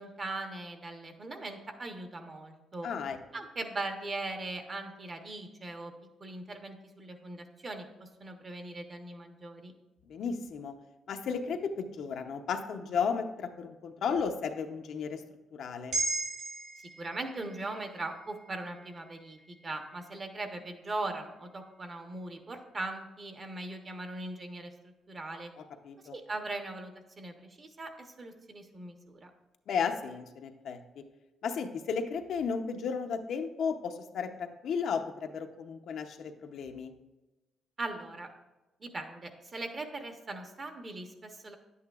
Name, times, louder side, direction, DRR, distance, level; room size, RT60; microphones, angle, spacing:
voice 1, 0.0-2.9 3.3-5.9 6.2-9.7 17.0-25.5 26.1-29.3 37.8-38.3 38.8-41.6, right 2 dB, 35° right, 5 dB, 1.0 m, -40 dB
voice 2, 2.8-3.2 10.0-10.7 11.1-15.2 15.5-16.0 25.6-26.2 29.7-31.0 31.4-36.9, left 6 dB, 70° left, 5 dB, 0.7 m, -34 dB
sound 1, 15.9-20.4 20.8-20.9, right 2 dB, 65° right, 2.6 m, -39 dB
10.5 x 8.5 x 2.4 m, 1.1 s
cardioid pair, 90°, 0 cm